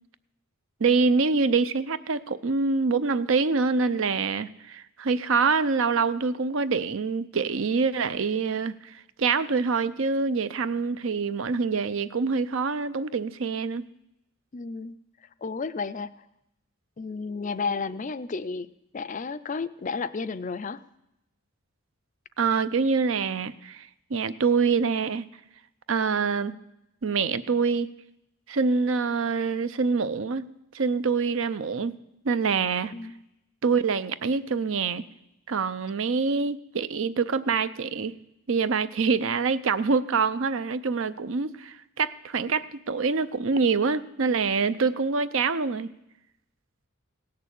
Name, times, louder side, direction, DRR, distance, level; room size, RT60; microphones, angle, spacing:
voice 1, 0.8-13.8 22.4-25.2 25.9-26.5 27.0-27.9 28.5-30.5 30.7-31.9 32.2-32.9 33.6-35.0 35.5-38.1 38.5-45.9, right 4 dB, 65° right, 15 dB, 0.6 m, -25 dB
voice 2, 14.5-15.0 15.4-16.1 17.0-18.7 18.9-20.8 32.9-33.2, left 4 dB, 35° left, 14 dB, 0.4 m, -32 dB
17.0 x 6.8 x 8.2 m, 0.86 s
head